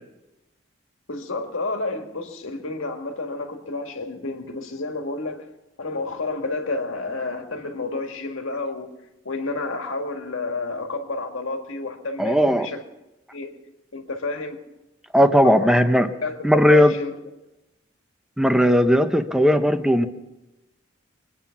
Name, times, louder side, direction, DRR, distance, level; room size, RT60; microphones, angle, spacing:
voice 1, 1.1-5.5 5.8-9.0 9.2-12.8 13.3-13.6 13.9-14.6 15.4-15.8 16.2-17.2, left 3 dB, 85° left, 4 dB, 1.8 m, -30 dB
voice 2, 12.2-12.7 15.1-16.1 16.4-17.0 18.4-20.1, equal, 5° right, 8 dB, 0.7 m, -17 dB
24.0 x 9.2 x 5.8 m, 1.0 s
head